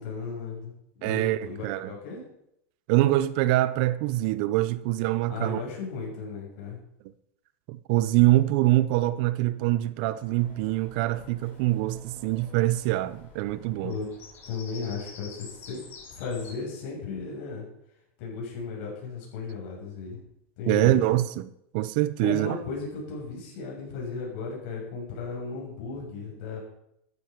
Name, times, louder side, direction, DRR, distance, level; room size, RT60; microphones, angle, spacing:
voice 1, 0.0-2.2 5.3-6.8 13.8-14.1 14.4-15.8 16.1-17.6 18.2-20.2 20.6-21.0 22.2-26.6, left 4 dB, 50° left, 6.3 m, -35 dB
voice 2, 1.0-1.9 2.9-5.6 7.7-13.9 20.7-22.6, right 16 dB, 45° right, 0.5 m, -24 dB
Bird vocalization bird call bird song, 10.2-16.5, left 4 dB, 30° left, 5.9 m, -49 dB
13.0 x 10.5 x 4.6 m
supercardioid pair, 165°, 7 cm